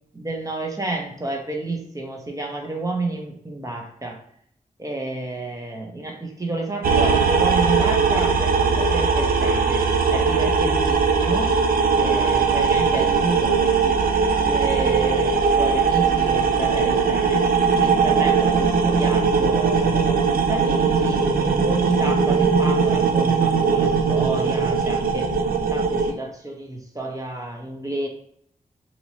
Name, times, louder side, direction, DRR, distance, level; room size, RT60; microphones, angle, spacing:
voice 1, 0.1-4.2 4.8-9.8 10.1-11.5 12.0-17.4 17.8-25.3 25.7-28.1, right 2 dB, 25° right, 1 dB, 0.8 m, -30 dB
sound 1, 6.8-26.1, right 5 dB, 85° right, 0.4 m, -20 dB
2.9 x 2.9 x 2.7 m, 0.68 s
cardioid pair, 55°, 15 cm